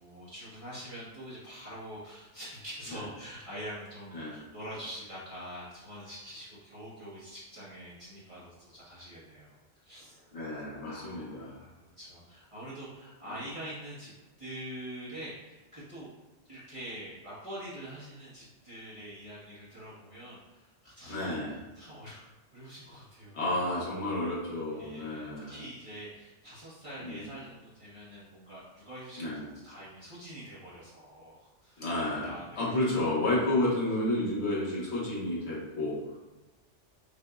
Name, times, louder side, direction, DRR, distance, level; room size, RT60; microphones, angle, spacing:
voice 1, 0.0-10.4 10.8-16.1 16.4-21.4 21.7-22.2 22.5-23.6 24.7-29.3 29.6-31.9 32.2-32.7 33.4-33.7, equal, 30° right, -10 dB, 1.3 m, -45 dB
voice 2, 10.3-11.5 21.1-21.6 23.3-25.6 27.0-27.2 29.2-29.4 31.8-36.2, left 1 dB, 65° left, -6 dB, 1.5 m, -31 dB
5.7 x 2.7 x 2.4 m, 1.1 s
omnidirectional pair, 1.2 m